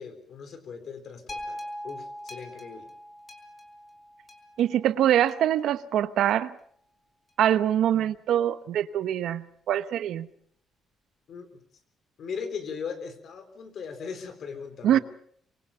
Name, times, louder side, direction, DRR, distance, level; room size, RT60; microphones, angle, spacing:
voice 1, 0.0-1.6 1.8-2.9 11.3-11.5 12.2-15.0, left 6 dB, 45° left, 3.7 m, -38 dB
sound 1, 1.3-5.6 6.3-6.4, left 1 dB, 20° left, 4.0 m, -42 dB
voice 2, 4.6-6.5 7.4-10.3 14.8-15.0, right 11 dB, 65° right, 0.9 m, -24 dB
25.0 x 23.0 x 5.6 m
cardioid pair, 170°, 0 cm